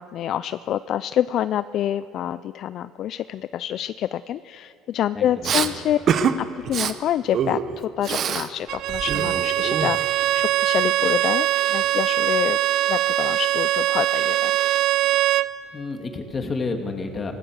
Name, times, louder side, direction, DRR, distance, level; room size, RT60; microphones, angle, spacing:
voice 1, 0.0-6.0 6.7-12.6 12.9-14.5 14.9-15.0, left 11 dB, 50° left, 15 dB, 0.4 m, -27 dB
voice 2, 5.1-5.7 15.7-17.3, left 3 dB, 25° left, 4 dB, 2.5 m, -30 dB
Respiratory sounds, 5.4-5.7 6.1-6.3 6.6-6.9 7.3-8.5 8.8-10.2, right 7 dB, 45° right, 1.1 m, -25 dB
Bowed string instrument, 8.7-15.5, right 14 dB, 65° right, 0.6 m, -22 dB
24.5 x 17.5 x 6.6 m, 2.8 s
cardioid pair, 120°, 0 cm